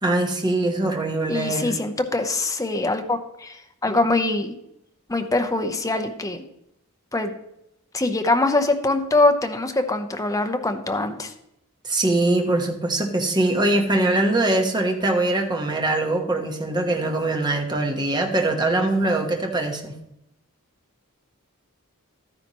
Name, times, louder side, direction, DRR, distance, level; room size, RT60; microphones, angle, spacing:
voice 1, 0.0-1.7 11.8-19.9, right 2 dB, 20° right, 2 dB, 1.2 m, -22 dB
voice 2, 1.3-4.6 5.1-6.4 7.1-7.3 7.9-11.3, left 2 dB, 15° left, 6 dB, 0.8 m, -23 dB
12.5 x 9.8 x 3.0 m, 0.81 s
head